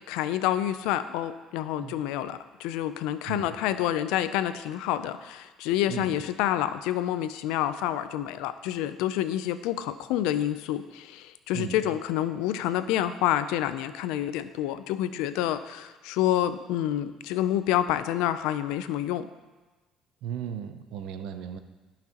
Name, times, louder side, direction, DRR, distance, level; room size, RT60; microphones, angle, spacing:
voice 1, 0.1-19.3, left 12 dB, 90° left, 12 dB, 0.4 m, -28 dB
voice 2, 5.9-6.2 11.5-11.8 20.2-21.6, right 8 dB, 75° right, 9 dB, 0.6 m, -36 dB
13.5 x 5.9 x 2.9 m, 1.2 s
cardioid pair, 110°, 0 cm